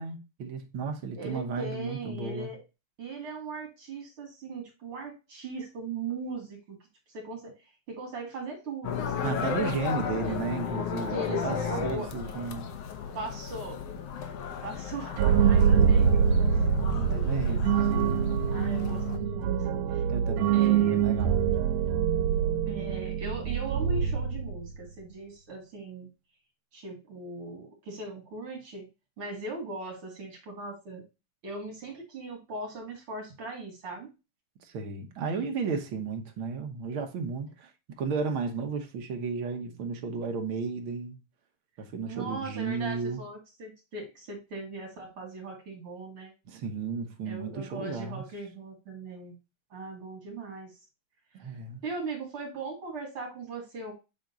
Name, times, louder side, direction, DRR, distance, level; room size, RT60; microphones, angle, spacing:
voice 1, 0.0-2.5 9.2-11.6 11.8-12.7 15.7-15.9 16.9-17.7 20.1-21.4 34.6-37.7 38.0-41.1 41.8-43.2 46.5-48.2 51.3-51.8, right 5 dB, 65° right, 1.3 m, -34 dB
voice 2, 1.2-2.6 3.0-6.8 7.1-7.6 7.9-9.6 10.2-10.4 11.1-12.1 13.1-13.8 14.6-15.1 15.5-20.0 20.5-21.1 22.7-26.1 26.7-28.9 29.2-31.0 31.4-34.1 42.0-46.3 47.3-49.3 49.7-50.8 51.8-53.9, right 3 dB, 45° right, 2.7 m, -39 dB
sound 1, 8.8-19.2, left 7 dB, 70° left, 1.5 m, -34 dB
sound 2, 15.2-24.8, right 7 dB, 85° right, 2.1 m, -25 dB
7.7 x 3.6 x 3.9 m
omnidirectional pair, 3.6 m